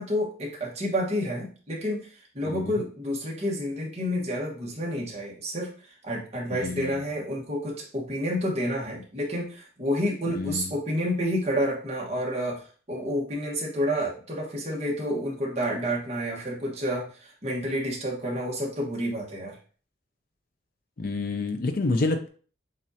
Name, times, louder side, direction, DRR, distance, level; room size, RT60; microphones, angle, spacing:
voice 1, 0.0-2.1 2.3-19.6, equal, 35° right, -2 dB, 1.3 m, -29 dB
voice 2, 6.6-7.0 10.4-10.7 21.0-22.3, left 3 dB, 50° left, 5 dB, 0.6 m, -28 dB
7.3 x 2.6 x 2.7 m, 0.41 s
head